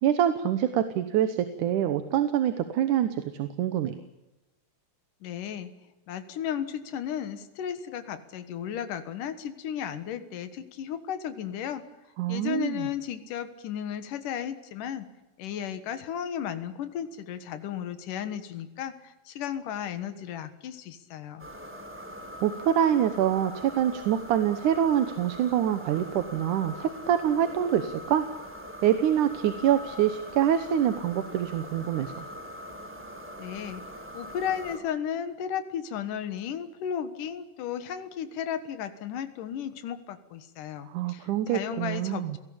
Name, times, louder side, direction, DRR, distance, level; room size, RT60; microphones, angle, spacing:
voice 1, 0.0-4.0 12.2-12.9 22.4-28.3 28.8-32.2 40.9-42.4, right 10 dB, 75° right, 10 dB, 2.6 m, -25 dB
voice 2, 5.2-5.7 6.1-11.9 12.3-15.1 15.4-21.5 33.4-33.8 34.1-42.4, left 9 dB, 85° left, 10 dB, 3.0 m, -34 dB
sound 1, 21.4-34.8, equal, 5° right, 3.6 m, -42 dB
30.0 x 18.5 x 8.6 m, 1.0 s
omnidirectional pair, 3.6 m